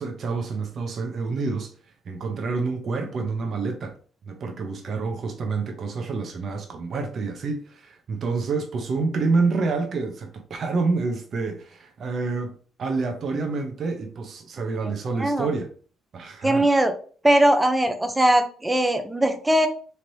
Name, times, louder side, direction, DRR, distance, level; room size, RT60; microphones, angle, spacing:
voice 1, 0.0-1.7 2.1-4.0 4.3-12.5 12.8-15.7 16.1-16.7, right 4 dB, 55° right, 0.7 m, -28 dB
voice 2, 16.4-16.9 17.2-19.7, right 1 dB, 15° right, 0.5 m, -20 dB
3.1 x 2.9 x 2.7 m
cardioid pair, 90°, 0 cm